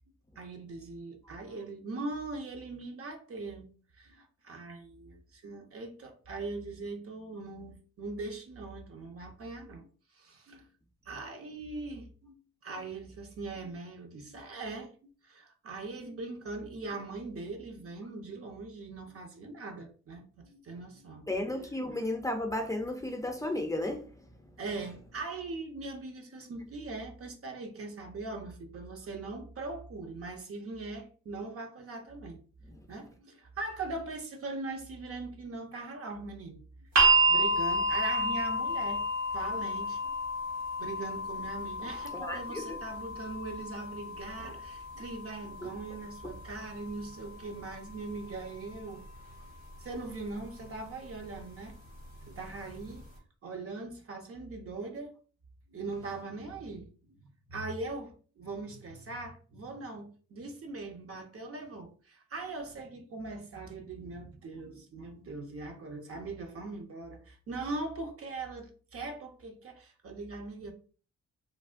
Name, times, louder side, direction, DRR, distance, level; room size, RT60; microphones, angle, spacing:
voice 1, 0.4-3.7 4.0-9.9 10.1-10.7 11.1-21.3 21.9-22.0 24.6-32.4 32.7-36.6 37.2-39.0 39.3-40.1 40.8-49.0 49.8-51.8 52.3-53.0 53.4-55.1 55.7-57.2 57.5-70.7, right 3 dB, 50° right, 0.7 m, -41 dB
voice 2, 21.3-24.1 42.2-42.8 45.6-45.7, left 1 dB, 10° left, 0.5 m, -33 dB
sound 1, 37.0-49.0 50.1-50.2, right 2 dB, 70° right, 1.1 m, -31 dB
3.3 x 2.1 x 2.4 m
cardioid pair, 70°, 29 cm